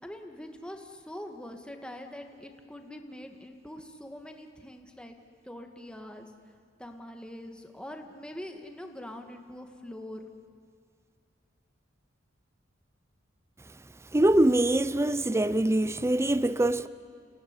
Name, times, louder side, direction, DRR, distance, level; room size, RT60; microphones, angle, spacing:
voice 1, 0.0-5.2 5.4-6.3 6.8-10.3, left 1 dB, 5° left, 1.9 m, -43 dB
voice 2, 14.1-16.9, right 1 dB, 15° right, 0.6 m, -24 dB
29.0 x 17.0 x 9.8 m
head